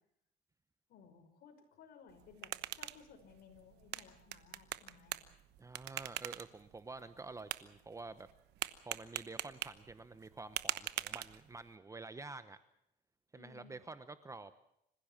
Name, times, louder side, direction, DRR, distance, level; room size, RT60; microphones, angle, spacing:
voice 1, 0.9-5.3 13.3-13.8, left 6 dB, 70° left, 6 dB, 5.7 m, -59 dB
sound 1, 2.1-11.7, right 15 dB, 80° right, 1.1 m, -45 dB
voice 2, 5.6-8.3 8.8-12.6 13.3-14.5, right 3 dB, 20° right, 12 dB, 1.0 m, -49 dB
26.5 x 15.5 x 7.4 m, 0.78 s
cardioid pair, 110°, 17 cm